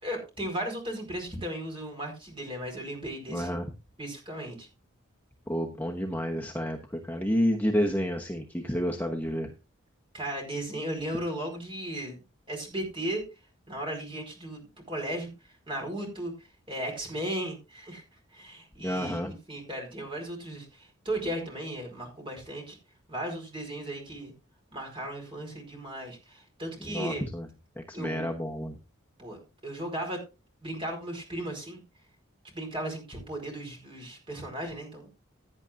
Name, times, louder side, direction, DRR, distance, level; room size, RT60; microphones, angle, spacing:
voice 1, 0.0-3.5 4.0-4.7 10.1-12.2 12.5-13.2 13.7-15.3 15.7-16.3 16.7-18.0 18.3-22.8 23.1-24.3 24.7-27.2 27.9-28.3 29.2-30.2 30.6-31.8 32.5-35.1, right 1 dB, 25° right, 2 dB, 4.7 m, -36 dB
voice 2, 3.3-3.7 5.5-9.5 18.8-19.3 26.8-27.5 27.8-28.8, equal, 10° left, 1 dB, 1.0 m, -30 dB
16.5 x 9.8 x 2.6 m, 0.28 s
head